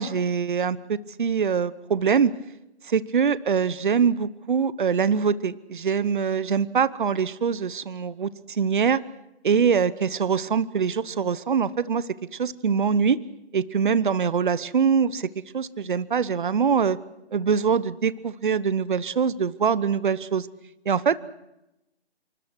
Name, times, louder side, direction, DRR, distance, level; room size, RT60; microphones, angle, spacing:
voice 1, 0.0-2.3 2.9-9.0 9.4-12.1 12.4-13.2 13.5-15.3 15.5-17.0 17.3-20.5 20.9-21.2, right 6 dB, 50° right, 18 dB, 0.9 m, -23 dB
27.5 x 24.5 x 6.2 m, 0.92 s
figure-of-eight pair, 150°, 32 cm